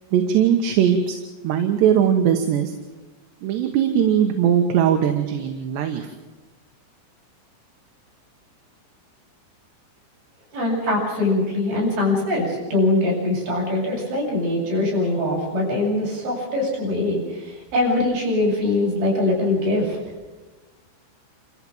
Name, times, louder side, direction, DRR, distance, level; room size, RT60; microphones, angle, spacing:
voice 1, 0.1-1.2 1.4-2.7 3.4-6.1, right 9 dB, 75° right, 5 dB, 3.4 m, -20 dB
voice 2, 10.5-20.0, left 2 dB, 55° right, -3 dB, 9.7 m, -22 dB
28.5 x 14.5 x 7.3 m, 1.2 s
omnidirectional pair, 5.1 m